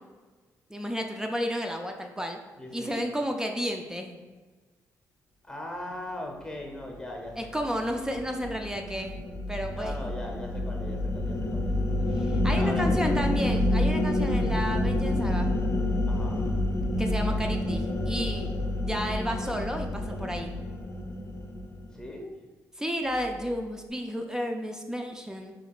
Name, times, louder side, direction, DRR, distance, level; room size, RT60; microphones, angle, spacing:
voice 1, 0.7-2.4 2.7-4.2 7.4-9.2 9.5-10.0 12.2-15.5 17.0-18.5 18.8-20.5 22.8-25.5, equal, 10° right, 4 dB, 0.4 m, -32 dB
voice 2, 2.6-3.0 5.4-7.8 9.7-12.1 12.5-12.9 16.1-16.5 21.9-22.3, left 1 dB, 10° left, 1 dB, 0.9 m, -39 dB
sound 1, 7.5-22.0, left 1 dB, 45° left, 0.5 m, -28 dB
4.9 x 2.9 x 2.3 m, 1.4 s
cardioid pair, 80°, 6 cm